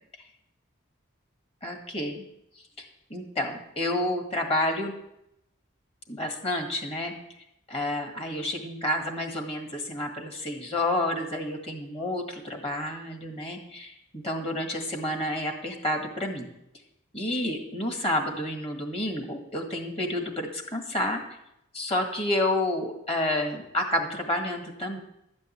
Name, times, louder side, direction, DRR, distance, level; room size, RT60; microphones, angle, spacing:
voice 1, 1.6-2.2 2.8-4.9 6.1-7.1 7.7-16.5 17.1-21.2 21.7-25.0, left 1 dB, 30° left, 3 dB, 1.8 m, -30 dB
13.0 x 5.3 x 9.1 m, 0.83 s
head